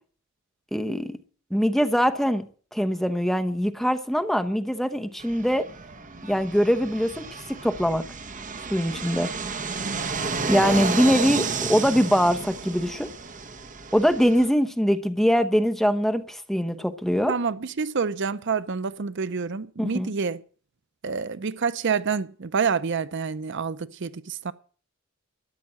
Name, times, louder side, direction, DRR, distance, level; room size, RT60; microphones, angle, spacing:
voice 1, 0.7-1.2 1.5-2.4 2.7-5.7 6.2-8.0 8.7-9.3 10.5-13.1 13.9-17.3 19.8-20.1, equal, ahead, 1.0 m, -23 dB
Fixed-wing aircraft airplane, 5.2-14.5, right 4 dB, 40° right, 1.5 m, -32 dB
voice 2, 9.8-10.1 17.3-20.4 21.0-24.5, right 5 dB, 60° right, 0.6 m, -28 dB
13.5 x 9.4 x 7.5 m
head